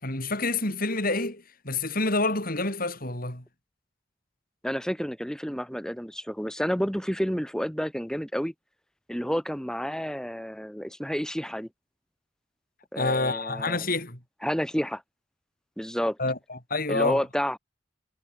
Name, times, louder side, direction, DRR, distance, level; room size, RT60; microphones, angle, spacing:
voice 1, 0.0-3.4 13.0-14.2 16.2-17.2, left 2 dB, 45° left, 6.2 m, -28 dB
voice 2, 4.6-8.5 9.1-11.7 12.9-13.8 14.4-15.0 15.8-16.2 16.9-17.6, equal, 5° left, 3.9 m, -30 dB
head